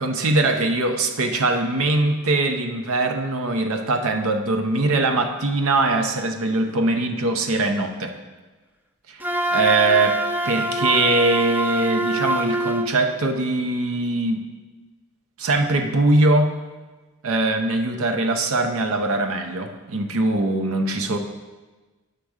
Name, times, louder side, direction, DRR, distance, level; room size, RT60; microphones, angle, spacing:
voice 1, 0.0-8.1 9.1-9.2 9.5-10.2 10.4-14.4 15.4-16.5 17.2-21.2, right 2 dB, 65° right, 5 dB, 0.7 m, -21 dB
Wind instrument woodwind instrument, 9.2-12.9, right 1 dB, 10° right, 0.5 m, -24 dB
10.0 x 3.6 x 6.4 m, 1.2 s
head